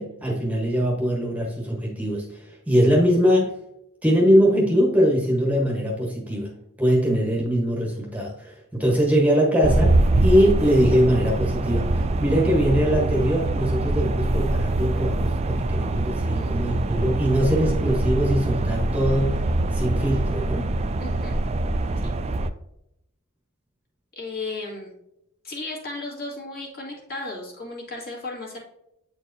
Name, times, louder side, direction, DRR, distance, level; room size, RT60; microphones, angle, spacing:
voice 1, 0.0-3.5 4.0-6.5 6.8-20.7, equal, 5° right, -2 dB, 1.1 m, -22 dB
sound 1, 9.6-22.5, right 2 dB, 30° right, 0.3 m, -24 dB
voice 2, 16.3-16.9 21.0-21.4 22.0-22.1 24.2-24.9 25.4-28.6, left 2 dB, 45° left, -2 dB, 1.9 m, -35 dB
8.2 x 4.5 x 2.7 m, 0.81 s
head